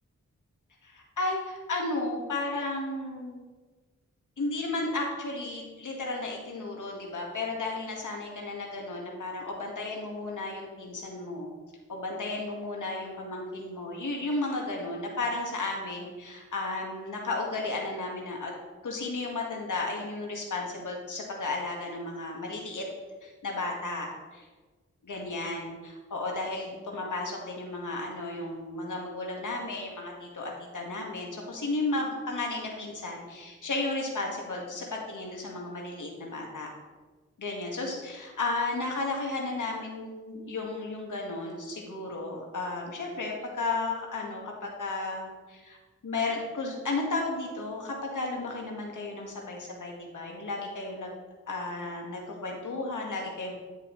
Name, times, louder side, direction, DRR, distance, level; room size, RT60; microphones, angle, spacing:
voice 1, 0.8-3.4 4.4-11.5 11.9-18.5 18.8-22.8 23.2-24.5 25.0-36.7 37.4-45.8 46.0-51.1 51.5-53.5, left 2 dB, 80° left, 0 dB, 1.7 m, -34 dB
10.5 x 7.0 x 3.1 m, 1.3 s
cardioid pair, 55°, 30 cm